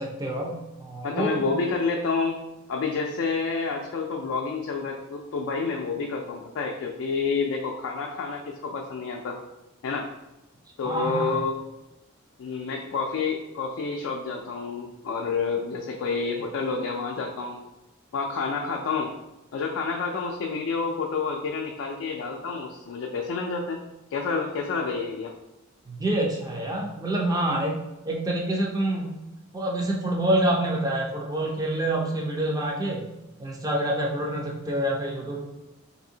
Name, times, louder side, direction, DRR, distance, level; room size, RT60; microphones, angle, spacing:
voice 1, 0.0-1.3 10.8-11.4 25.9-29.2 29.5-33.1 33.4-35.4, right 1 dB, 20° right, -2 dB, 0.5 m, -27 dB
voice 2, 1.0-2.4 2.7-9.4 9.8-10.1 10.8-11.6 12.4-17.6 18.1-19.1 19.5-23.8 24.1-25.3, left 4 dB, 65° left, 1 dB, 0.3 m, -29 dB
3.4 x 2.6 x 2.7 m, 0.99 s
head